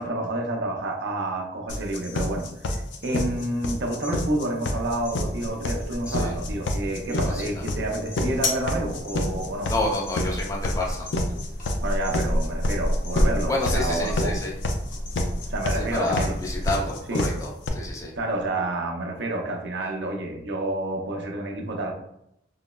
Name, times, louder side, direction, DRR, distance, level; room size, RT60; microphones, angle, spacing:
voice 1, 0.0-9.7 11.8-14.3 15.5-16.3 17.1-17.3 18.2-21.9, right 1 dB, 80° right, 1 dB, 0.6 m, -29 dB
sound 1, 1.7-17.7, left 2 dB, 90° left, 0.4 m, -28 dB
sound 2, 4.8-16.7, equal, 45° left, 1.0 m, -32 dB
voice 2, 7.2-7.6 9.6-11.1 13.5-14.5 15.7-18.1, left 1 dB, 20° left, -3 dB, 0.5 m, -29 dB
3.8 x 2.0 x 2.2 m, 0.80 s
head